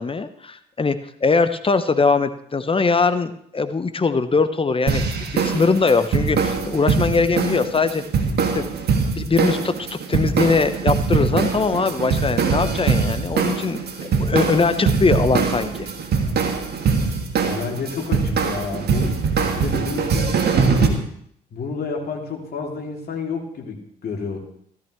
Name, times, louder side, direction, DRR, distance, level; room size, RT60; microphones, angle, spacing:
voice 1, 0.0-8.0 8.5-8.6 9.2-15.9, left 4 dB, 25° left, 11 dB, 1.0 m, -21 dB
sound 1, 4.9-20.9, right 5 dB, 55° right, 1.8 m, -22 dB
voice 2, 17.4-19.2 19.5-21.0 21.5-24.4, left 5 dB, 50° left, 0 dB, 3.0 m, -30 dB
16.0 x 13.5 x 3.2 m, 0.67 s
hypercardioid pair, 45°, 20 cm